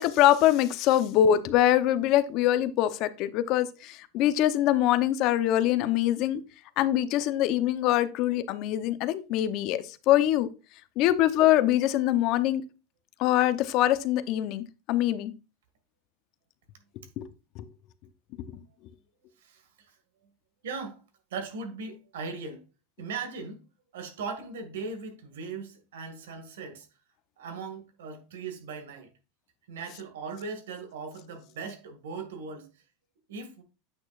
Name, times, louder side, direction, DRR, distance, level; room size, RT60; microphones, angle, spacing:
voice 1, 0.0-6.4 6.8-10.5 11.0-12.6 13.2-15.3 17.2-17.3 17.6-17.7, left 12 dB, 50° left, 0.7 m, -24 dB
voice 2, 20.6-21.0 21.3-22.6 23.0-23.6 23.9-26.9 27.4-29.1 29.7-32.7 33.3-33.6, right 4 dB, 90° right, 1.9 m, -38 dB
8.8 x 6.1 x 2.5 m
supercardioid pair, 125°, 0 cm